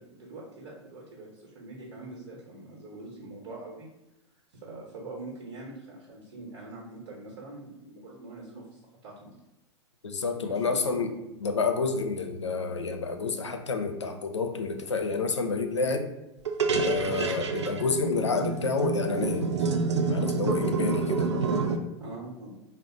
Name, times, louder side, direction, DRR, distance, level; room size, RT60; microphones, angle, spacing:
voice 1, 0.0-3.9 4.5-9.3 10.4-11.0 16.9-17.1 22.0-22.6, right 2 dB, 55° right, -2 dB, 1.0 m, -44 dB
voice 2, 10.0-11.1 11.4-16.1 16.8-19.7 20.1-21.3, left 4 dB, 80° left, 5 dB, 0.5 m, -29 dB
sound 1, 16.4-21.8, right 4 dB, 80° right, 0.4 m, -28 dB
3.9 x 2.1 x 3.8 m, 0.93 s
figure-of-eight pair, 95°, 15 cm